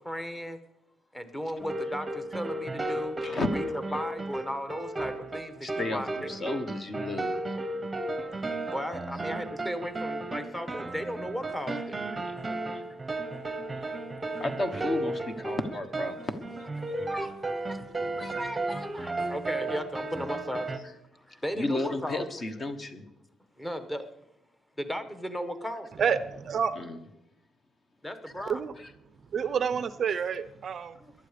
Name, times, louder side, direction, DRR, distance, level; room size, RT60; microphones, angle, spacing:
voice 1, 0.0-0.6 1.1-3.2 3.5-6.5 8.7-12.2 15.0-15.1 16.2-16.3 16.9-17.8 18.2-20.7 21.1-22.3 23.6-24.1 24.8-25.9 28.0-28.6 30.9-31.1, equal, 10° left, 9 dB, 1.2 m, -36 dB
sound 1, 1.6-20.8, right 2 dB, 10° right, 1.1 m, -34 dB
voice 2, 5.6-7.4 14.4-16.2 17.0-17.1 21.5-23.0 26.8-27.0 28.8-28.9, left 2 dB, 30° left, 8 dB, 1.2 m, -32 dB
voice 3, 26.0-26.8 28.5-28.7 29.3-30.9, right 7 dB, 40° right, 14 dB, 0.6 m, -28 dB
18.0 x 12.0 x 5.1 m, 0.85 s
cardioid pair, 175°, 0 cm